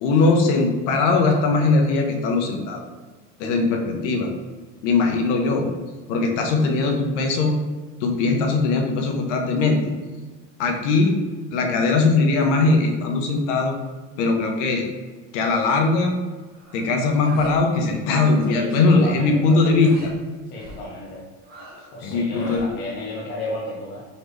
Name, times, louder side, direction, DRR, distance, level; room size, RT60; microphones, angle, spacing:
voice 1, 0.0-2.9 3.4-4.3 4.8-5.7 6.1-7.6 8.0-9.9 10.6-11.2 11.5-13.7 14.2-14.9 15.3-16.1 16.7-20.1 22.0-22.7, left 3 dB, 80° left, 3 dB, 0.9 m, -20 dB
sound 1, 16.5-16.9 17.2-17.6 17.9-18.5 18.7-19.1 19.8-20.1 20.6-20.9 21.4-21.9 22.3-22.7, right 1 dB, 25° right, 0.9 m, -42 dB
voice 2, 18.5-19.7 20.5-21.2 21.9-24.0, left 1 dB, 30° left, -5 dB, 0.5 m, -33 dB
4.1 x 3.2 x 3.1 m, 1.3 s
cardioid pair, 170°, 36 cm